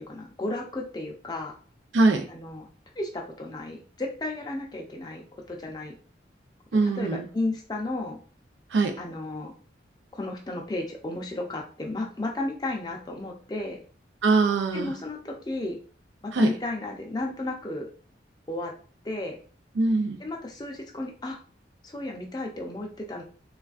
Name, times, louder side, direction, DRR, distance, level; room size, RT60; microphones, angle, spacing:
voice 1, 0.0-1.6 2.3-2.7 3.0-5.9 6.8-8.2 9.0-9.5 10.1-13.8 14.7-15.8 16.2-17.9 18.5-18.7 19.0-19.4 20.2-21.4 21.8-23.2, left 2 dB, 20° left, 0 dB, 0.5 m, -33 dB
voice 2, 1.9-2.3 6.7-7.3 8.7-9.0 14.2-14.9 16.3-16.5 19.8-20.2, right 3 dB, 85° right, 5 dB, 0.5 m, -22 dB
3.2 x 2.4 x 2.4 m, 0.39 s
head